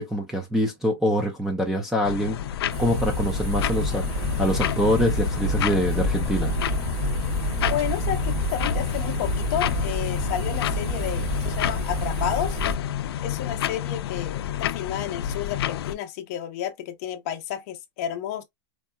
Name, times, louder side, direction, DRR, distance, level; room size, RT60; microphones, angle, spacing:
voice 1, 0.0-6.5, equal, 5° right, 0.4 m, -25 dB
sound 1, 2.0-15.9, left 11 dB, 65° left, 0.4 m, -30 dB
sound 2, 2.7-12.8, right 1 dB, 35° right, 2.7 m, -28 dB
voice 2, 7.7-12.6 13.2-18.4, left 10 dB, 35° left, 0.8 m, -31 dB
4.5 x 2.7 x 2.2 m
supercardioid pair, 170°, 14 cm